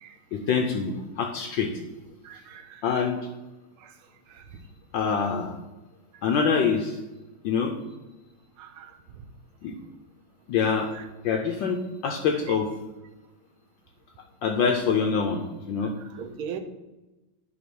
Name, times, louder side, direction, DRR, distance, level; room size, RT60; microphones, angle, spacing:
voice 1, 0.3-1.7 2.8-3.2 4.9-5.6 6.2-7.0 7.4-7.7 9.6-9.7 10.5-10.9 11.2-12.7 14.4-15.9, left 6 dB, 70° left, 4 dB, 1.3 m, -25 dB
voice 2, 2.2-2.8 3.8-3.9 4.3-4.4 8.6-8.9 15.8-15.9 16.1-16.6, right 8 dB, 85° right, 8 dB, 1.6 m, -39 dB
9.5 x 3.6 x 6.1 m, 1.1 s
omnidirectional pair, 2.3 m